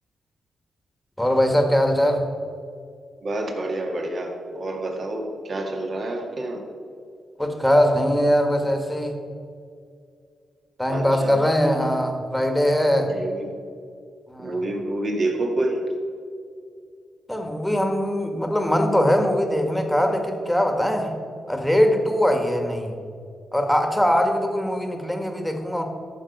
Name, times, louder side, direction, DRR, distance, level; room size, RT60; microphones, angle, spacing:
voice 1, 1.2-2.2 7.4-9.2 10.8-13.1 14.3-14.6 17.3-21.1 21.5-22.9 23.5-25.8, equal, 5° left, 4 dB, 1.6 m, -21 dB
voice 2, 3.2-6.6 10.9-11.4 13.0-13.5 14.4-15.8, right 1 dB, 50° right, 2 dB, 2.0 m, -28 dB
14.0 x 6.2 x 5.4 m, 2.3 s
cardioid pair, 90°, 0 cm